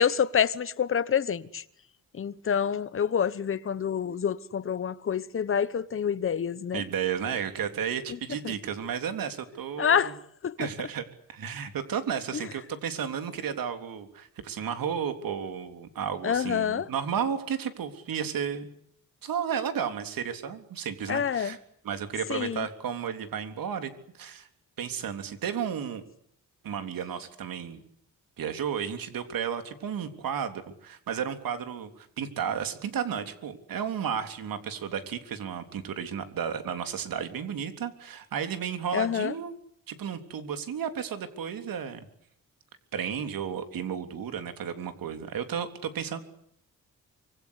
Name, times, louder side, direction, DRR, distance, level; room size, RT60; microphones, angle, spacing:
voice 1, 0.0-1.6 2.2-6.8 8.4-8.5 9.8-10.1 10.4-10.6 16.2-16.9 21.1-21.5 22.3-22.7 38.9-39.3, left 8 dB, 40° left, 1.2 m, -27 dB
voice 2, 6.7-10.1 10.6-18.7 19.2-21.6 21.8-24.5 24.8-26.0 26.6-27.8 28.4-39.5 39.9-42.1 42.9-46.2, right 8 dB, 75° right, 3.6 m, -33 dB
25.5 x 24.5 x 8.4 m
wide cardioid pair, 160°, 34 cm